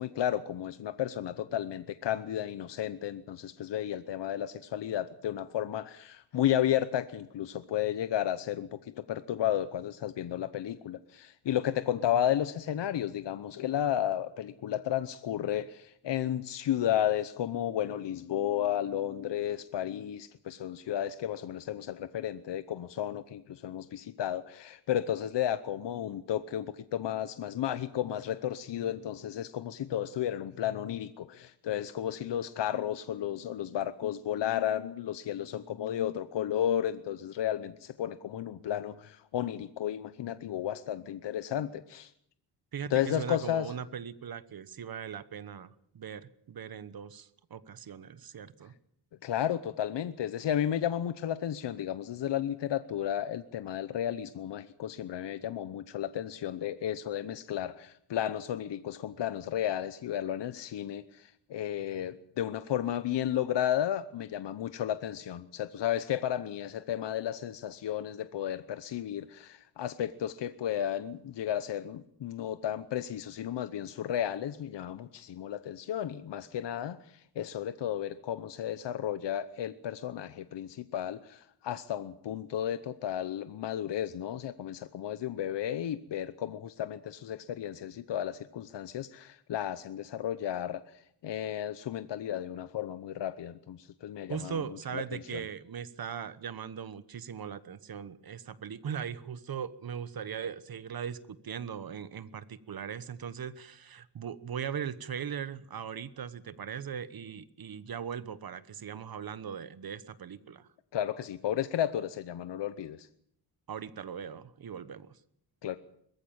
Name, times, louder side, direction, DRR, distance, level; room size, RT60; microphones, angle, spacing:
voice 1, 0.0-8.7 9.1-42.1 42.9-43.7 49.2-77.0 77.4-90.8 91.2-94.6 94.9-95.4 110.9-113.1 115.6-115.8, left 11 dB, 80° left, 12 dB, 0.9 m, -33 dB
voice 2, 42.7-48.7 94.3-110.7 113.7-115.2, right 7 dB, 55° right, 15 dB, 1.2 m, -39 dB
21.0 x 15.0 x 8.7 m, 0.70 s
wide cardioid pair, 125°, 42 cm